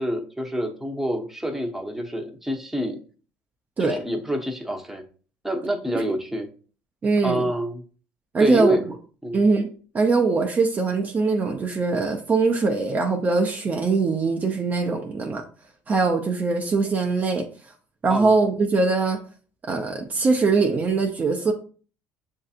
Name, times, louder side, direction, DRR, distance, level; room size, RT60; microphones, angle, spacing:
voice 1, 0.0-3.0 3.8-5.0 5.4-6.5 7.2-7.8 8.4-8.9 9.2-9.4 18.1-18.3, equal, 5° right, 3 dB, 0.8 m, -27 dB
voice 2, 7.0-7.4 8.3-8.8 9.3-9.7 9.9-15.4 15.9-17.5 18.0-19.2 19.7-21.5, right 4 dB, 30° right, 3 dB, 0.6 m, -22 dB
6.3 x 2.7 x 2.4 m, 0.40 s
supercardioid pair, 90°, 6 cm